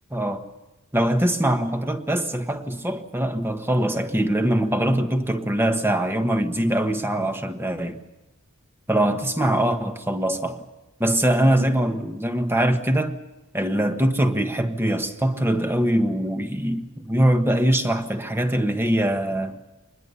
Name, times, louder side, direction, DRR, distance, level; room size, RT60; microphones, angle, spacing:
voice 1, 0.1-0.5 0.9-8.0 8.9-10.6 11.0-13.2 13.5-19.5, right 1 dB, 10° right, 1.4 m, -22 dB
24.5 x 20.5 x 7.0 m
head